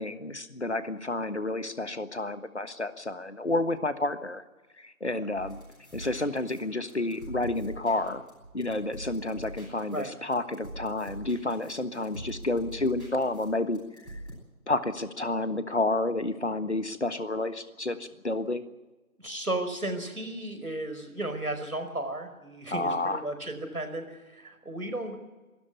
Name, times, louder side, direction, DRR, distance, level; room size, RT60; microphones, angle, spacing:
voice 1, 0.0-4.4 4.8-5.6 5.9-8.2 8.5-13.8 14.1-14.2 14.7-18.6 22.7-23.2, left 2 dB, 50° left, 11 dB, 1.5 m, -30 dB
sound 1, 5.3-14.3, right 1 dB, ahead, 3.8 m, -44 dB
voice 2, 19.2-25.2, right 1 dB, 80° right, 7 dB, 5.1 m, -34 dB
24.0 x 13.0 x 9.8 m, 1.2 s
figure-of-eight pair, 170°, 43 cm